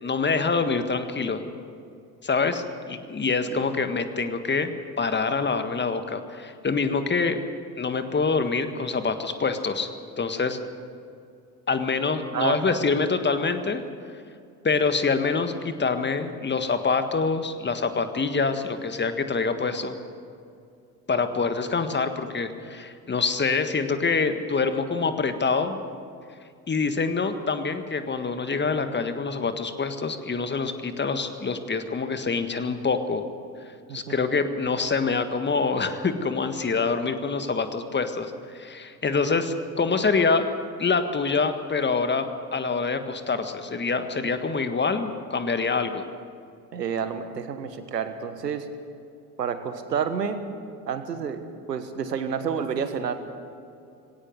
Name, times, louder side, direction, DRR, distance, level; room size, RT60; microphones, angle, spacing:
voice 1, 0.0-1.4 2.2-7.4 7.8-9.9 10.2-10.6 11.7-13.8 14.6-19.9 21.1-25.8 26.7-33.2 33.9-40.5 40.8-46.0, left 4 dB, 20° left, 9 dB, 1.7 m, -25 dB
voice 2, 12.3-12.8 33.9-34.2 46.7-48.7 49.4-50.4 50.9-51.4 51.7-53.1, right 7 dB, 80° right, 10 dB, 1.4 m, -29 dB
19.5 x 17.5 x 7.8 m, 2.4 s
figure-of-eight pair, 55°, 48 cm